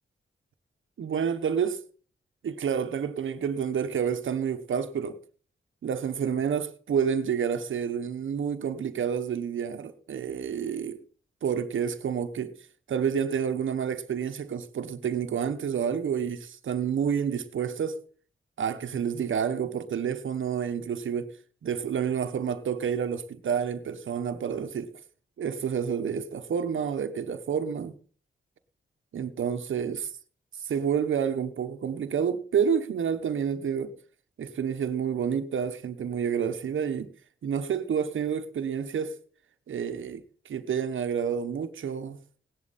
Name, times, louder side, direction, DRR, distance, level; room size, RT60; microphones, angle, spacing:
voice 1, 1.0-1.8 2.4-5.2 5.8-11.0 11.4-12.5 12.9-18.0 18.6-21.4 21.6-24.9 25.4-27.9 29.1-30.1 30.6-33.9 34.4-37.1 37.4-39.2 39.7-42.2, right 7 dB, 80° right, 1.2 m, -29 dB
17.5 x 11.0 x 4.2 m
wide cardioid pair, 155°, 20 cm